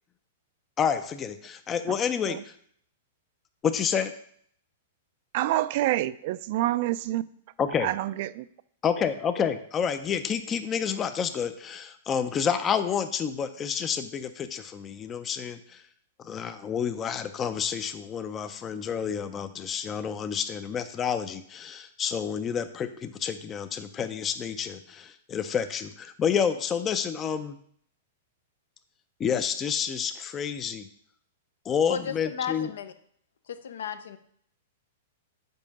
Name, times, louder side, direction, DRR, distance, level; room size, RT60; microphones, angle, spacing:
voice 1, 0.8-2.5 3.6-4.1 7.6-7.9 8.8-15.8 16.2-27.6 29.2-30.9 31.7-32.7, left 7 dB, 25° left, 0.4 m, -29 dB
voice 2, 5.3-7.2 7.8-8.5, right 15 dB, 55° right, 0.3 m, -27 dB
voice 3, 31.9-32.9 33.5-34.2, left 7 dB, 75° left, 0.6 m, -34 dB
5.4 x 4.5 x 5.3 m
hypercardioid pair, 120°, 0 cm